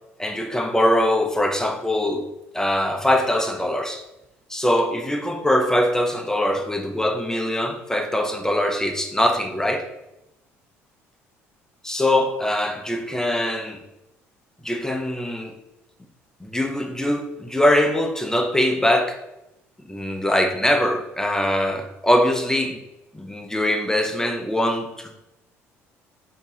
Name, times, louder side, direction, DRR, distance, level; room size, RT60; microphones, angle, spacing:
voice 1, 0.2-2.3 2.5-4.0 4.5-9.9 11.8-13.8 14.6-15.6 16.4-19.2 19.9-22.8 23.1-25.1, left 1 dB, 5° left, 5 dB, 0.8 m, -22 dB
8.4 x 2.9 x 4.1 m, 0.92 s
figure-of-eight pair, 55°, 7 cm